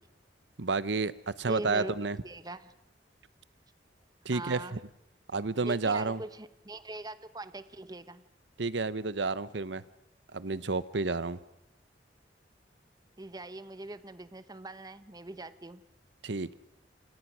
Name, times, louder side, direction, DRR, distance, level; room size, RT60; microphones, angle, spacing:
voice 1, 0.6-2.2 4.2-4.8 5.3-6.2 8.6-9.8 10.3-11.4 16.2-16.5, right 3 dB, 80° right, 16 dB, 0.9 m, -30 dB
voice 2, 1.5-2.0 2.2-2.7 4.3-4.8 5.6-8.2 13.2-15.8, right 2 dB, 20° right, 13 dB, 1.0 m, -42 dB
28.5 x 28.0 x 6.2 m, 0.85 s
head